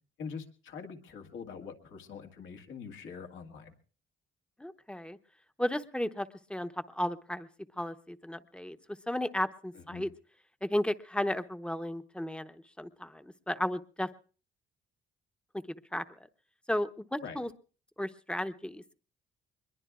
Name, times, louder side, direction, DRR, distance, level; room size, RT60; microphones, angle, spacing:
voice 1, 0.2-3.7 9.7-10.1 17.2-17.4, left 6 dB, 75° left, 4 dB, 1.9 m, -44 dB
voice 2, 4.6-5.2 5.6-7.5 7.8-8.8 9.1-10.1 10.6-14.1 15.9-16.0 16.7-17.5 18.0-18.9, left 1 dB, 5° left, 10 dB, 0.8 m, -34 dB
23.0 x 21.5 x 2.4 m, 0.40 s
cardioid pair, 90°, 20 cm